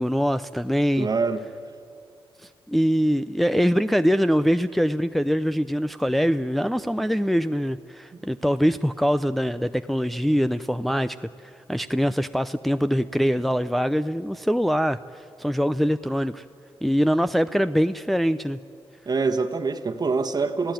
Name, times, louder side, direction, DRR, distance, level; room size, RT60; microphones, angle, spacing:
voice 1, 0.0-1.1 2.7-15.0 15.4-16.4 16.8-18.6, equal, ahead, 10 dB, 0.6 m, -23 dB
voice 2, 1.0-1.4 19.1-20.7, right 4 dB, 45° right, 5 dB, 1.3 m, -25 dB
30.0 x 16.5 x 9.1 m, 2.6 s
cardioid pair, 70°, 10 cm